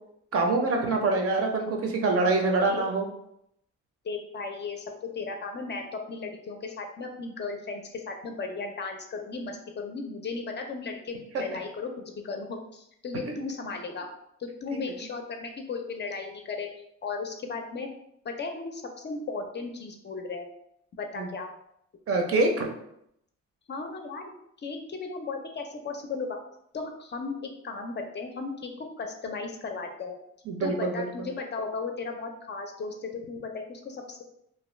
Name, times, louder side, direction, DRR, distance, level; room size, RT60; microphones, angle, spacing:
voice 1, 0.3-3.1 11.3-11.4 14.7-14.8 21.2-21.3 22.1-22.7 30.5-31.3, right 3 dB, 50° right, 2 dB, 0.6 m, -25 dB
voice 2, 4.0-14.1 14.4-16.7 17.0-17.9 18.2-20.5 21.0-21.5 23.7-24.2 24.6-26.4 26.7-27.4 27.6-30.2 30.6-34.2, left 4 dB, 35° left, 3 dB, 0.4 m, -36 dB
2.5 x 2.2 x 3.1 m, 0.76 s
cardioid pair, 90°, 30 cm